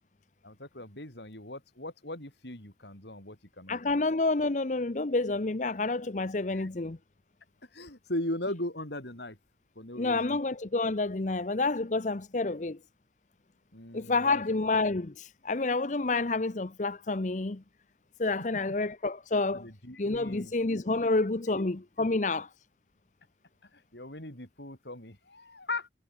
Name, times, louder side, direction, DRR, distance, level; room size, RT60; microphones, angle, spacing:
voice 1, 0.4-4.0 6.5-6.7 7.6-9.4 9.7-10.4 13.7-14.4 19.3-20.5 21.0-21.1 21.5-21.7 22.0-22.1 23.6-25.9, left 1 dB, 70° left, 6.2 m, -39 dB
voice 2, 3.7-7.0 10.0-12.8 13.9-17.6 18.2-19.7 20.0-22.5, left 3 dB, 45° left, 0.8 m, -29 dB
head